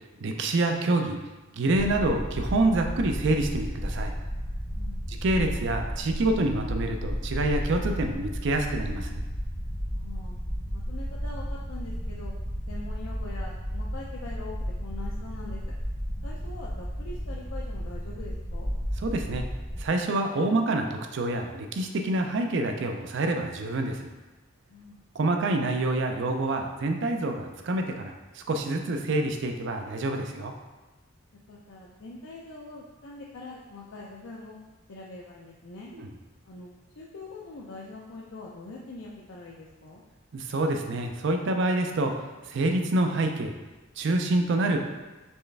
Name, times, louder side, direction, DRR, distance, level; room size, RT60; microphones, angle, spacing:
voice 1, 0.2-1.2 1.5-4.1 5.1-9.2 19.0-19.4 19.8-24.0 25.2-30.5 35.9-36.1 40.3-42.1 42.5-43.5 44.0-44.8, right 2 dB, 60° right, 4 dB, 0.4 m, -27 dB
sound 1, 1.7-19.9, equal, 20° left, 0.6 m, -33 dB
voice 2, 9.9-10.4 10.7-12.3 12.7-14.6 14.8-15.7 16.2-18.7 24.7-25.0 31.5-34.6 34.9-35.9 36.5-36.7 37.0-40.0, left 2 dB, 70° left, -4 dB, 0.5 m, -43 dB
4.3 x 3.3 x 3.3 m, 1.2 s
head